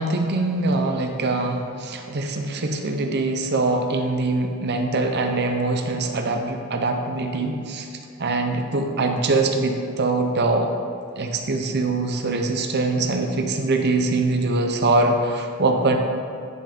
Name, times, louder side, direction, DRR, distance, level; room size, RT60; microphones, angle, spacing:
voice 1, 0.0-7.9 8.2-10.7 11.2-16.0, right 2 dB, 50° right, 4 dB, 0.7 m, -23 dB
10.0 x 5.4 x 3.7 m, 2.5 s
head